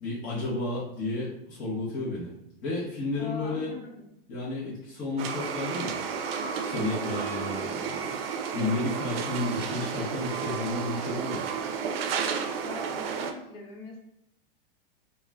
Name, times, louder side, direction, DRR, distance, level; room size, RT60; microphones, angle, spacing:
voice 1, 0.0-2.3 2.6-3.7 4.3-6.0 6.7-8.1 8.5-11.4, left 2 dB, 25° left, -8 dB, 0.7 m, -32 dB
voice 2, 3.2-4.0 12.6-14.0, left 4 dB, 80° left, 0 dB, 0.9 m, -42 dB
sound 1, 5.2-13.3, right 6 dB, 80° right, 0.5 m, -32 dB
2.3 x 2.1 x 3.3 m, 0.78 s
supercardioid pair, 150°, 30 cm